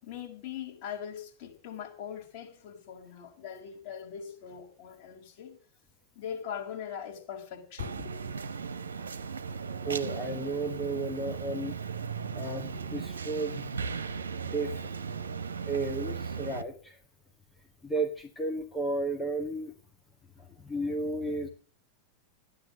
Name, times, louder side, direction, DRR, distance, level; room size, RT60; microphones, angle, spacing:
voice 1, 0.0-5.6 6.2-8.3, left 8 dB, 45° left, 5.6 m, -41 dB
sound 1, 7.8-16.6, right 6 dB, 70° right, 1.1 m, -37 dB
voice 2, 9.9-11.8 12.3-13.7 14.4-14.8 15.7-17.0 17.8-19.7 20.4-21.5, right 2 dB, 10° left, 1.9 m, -33 dB
14.0 x 10.5 x 7.8 m
figure-of-eight pair, 90°, 0 cm